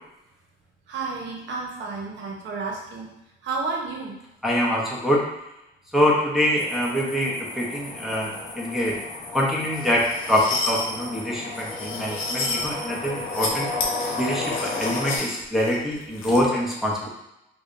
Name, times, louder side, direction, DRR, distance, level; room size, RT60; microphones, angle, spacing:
voice 1, 0.9-3.1 3.4-4.2, right 4 dB, 70° right, -1 dB, 0.9 m, -31 dB
voice 2, 4.4-5.2 5.9-9.0 9.3-13.7 14.2-17.1, equal, ahead, -4 dB, 0.8 m, -24 dB
sound 1, 6.6-15.2, left 3 dB, 60° left, 0.9 m, -34 dB
sound 2, 9.8-10.9 11.6-12.7 13.2-13.5 13.8-16.4, left 3 dB, 90° left, 0.7 m, -31 dB
4.7 x 2.3 x 2.6 m, 0.88 s
cardioid pair, 90°, 20 cm